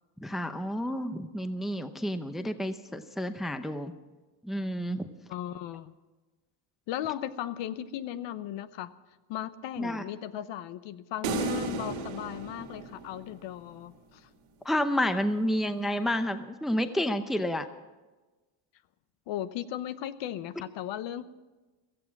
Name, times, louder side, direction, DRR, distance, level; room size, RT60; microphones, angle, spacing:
voice 1, 0.2-3.9 4.4-5.1 9.8-10.0 14.6-17.7, equal, ahead, 9 dB, 0.7 m, -30 dB
voice 2, 5.3-5.9 6.9-8.9 9.3-14.3 19.3-21.3, left 11 dB, 60° left, 13 dB, 1.0 m, -37 dB
sound 1, 11.2-13.6, right 3 dB, 85° right, 2.9 m, -34 dB
16.0 x 14.5 x 5.9 m, 1.2 s
cardioid pair, 125°, 50 cm